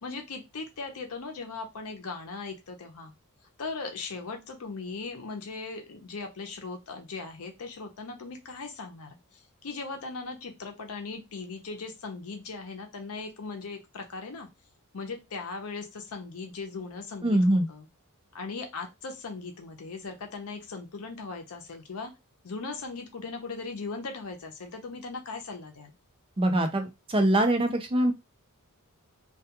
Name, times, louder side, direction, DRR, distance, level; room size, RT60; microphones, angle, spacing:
voice 1, 0.0-3.1 3.6-14.5 14.9-17.9 18.3-22.1 22.4-25.9, left 4 dB, 75° left, 4 dB, 0.6 m, -38 dB
voice 2, 17.2-17.7 26.4-28.1, right 1 dB, 25° right, 5 dB, 0.5 m, -23 dB
2.3 x 2.3 x 2.8 m, 0.23 s
head